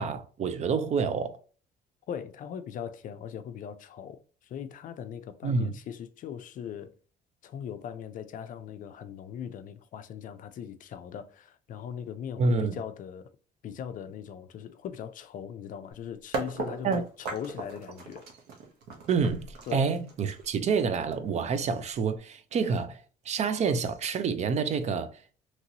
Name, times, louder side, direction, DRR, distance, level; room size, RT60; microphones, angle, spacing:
voice 1, 0.0-1.4 5.4-5.7 12.4-12.8 16.8-17.1 19.1-25.1, right 5 dB, 40° right, 0.4 m, -28 dB
voice 2, 2.1-6.9 7.4-13.3 13.6-18.3 19.7-19.9, left 8 dB, 50° left, 0.4 m, -40 dB
sound 1, 16.3-22.2, right 4 dB, 75° right, 0.8 m, -38 dB
2.9 x 2.6 x 2.8 m
cardioid pair, 110°, 17 cm